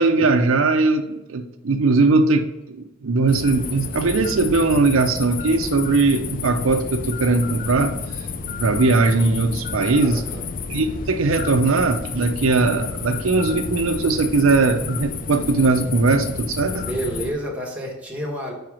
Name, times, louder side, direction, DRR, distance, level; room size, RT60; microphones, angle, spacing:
voice 1, 0.0-7.9 8.6-10.2 10.7-16.8, right 3 dB, 75° right, 6 dB, 0.6 m, -19 dB
sound 1, 3.2-17.3, left 5 dB, 40° left, 0.4 m, -30 dB
voice 2, 10.0-10.4 16.7-18.5, right 1 dB, 5° right, -3 dB, 1.4 m, -29 dB
4.9 x 4.6 x 6.2 m, 0.93 s
head